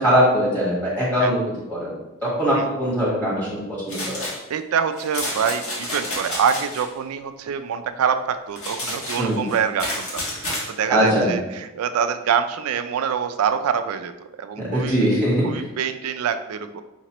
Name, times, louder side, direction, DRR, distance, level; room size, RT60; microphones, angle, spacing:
voice 1, 0.0-1.4 1.7-1.9 2.2-4.2 9.2-9.4 10.9-11.3 14.6-15.7, equal, 10° left, -8 dB, 1.2 m, -21 dB
sound 1, 3.9-4.4 5.0-6.8 8.6-10.7, left 1 dB, 70° left, 1.5 m, -30 dB
voice 2, 4.5-14.1 14.4-15.1 15.4-16.8, right 7 dB, 85° right, 10 dB, 0.3 m, -25 dB
5.1 x 3.0 x 2.9 m, 1.0 s
head